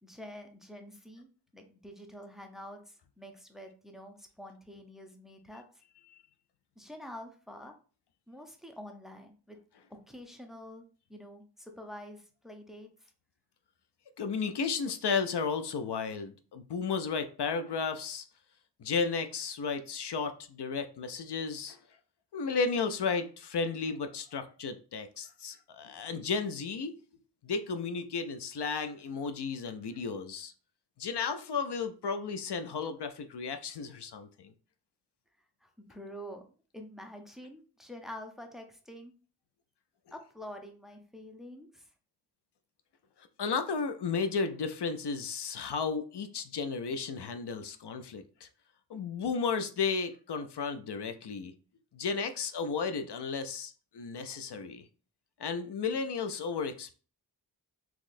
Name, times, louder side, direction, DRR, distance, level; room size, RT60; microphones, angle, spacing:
voice 1, 0.0-5.6 6.8-7.7 8.3-9.6 9.9-10.8 11.1-13.1 35.6-36.4 36.7-39.1 40.1-41.9, equal, ahead, 4 dB, 0.6 m, -47 dB
voice 2, 14.2-18.3 18.8-21.8 22.3-26.9 27.4-30.5 31.0-34.5 43.4-48.5 48.9-51.5 51.9-54.8 55.4-56.9, left 5 dB, 75° left, 9 dB, 0.5 m, -33 dB
3.9 x 3.0 x 2.5 m, 0.39 s
wide cardioid pair, 50°, 41 cm